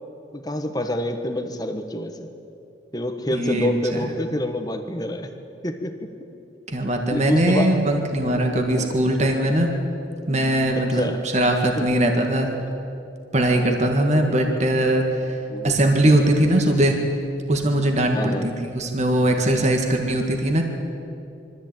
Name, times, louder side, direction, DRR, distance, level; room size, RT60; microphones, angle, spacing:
voice 1, 0.3-2.2 2.9-5.3 5.6-6.1 7.1-7.8 8.8-8.9 10.7-11.2 11.8-11.9 15.5-15.8 18.1-18.5, left 1 dB, 20° left, 6 dB, 1.4 m, -27 dB
voice 2, 3.3-4.1 6.7-9.7 10.3-12.5 13.3-15.4 15.6-17.0 17.5-20.6, right 1 dB, 35° right, 3 dB, 1.8 m, -20 dB
23.5 x 14.0 x 8.9 m, 2.8 s
head